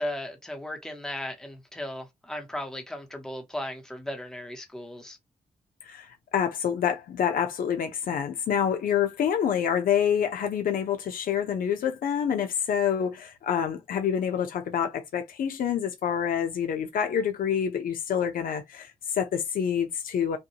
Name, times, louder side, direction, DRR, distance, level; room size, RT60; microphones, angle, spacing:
voice 1, 0.0-5.2, left 1 dB, 5° left, 0.9 m, -36 dB
voice 2, 6.3-20.4, left 8 dB, 90° left, 0.8 m, -27 dB
5.4 x 2.3 x 2.9 m
wide cardioid pair, 165°, 14 cm